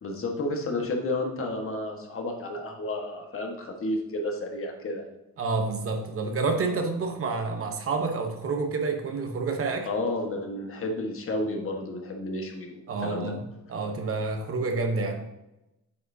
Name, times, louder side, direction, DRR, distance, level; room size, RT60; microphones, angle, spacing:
voice 1, 0.0-5.0 9.8-13.3, left 2 dB, 45° left, 1.5 m, -31 dB
voice 2, 5.4-9.9 12.9-15.3, right 3 dB, 50° right, 0.9 m, -29 dB
8.3 x 4.9 x 2.7 m
cardioid pair, 90°, 30 cm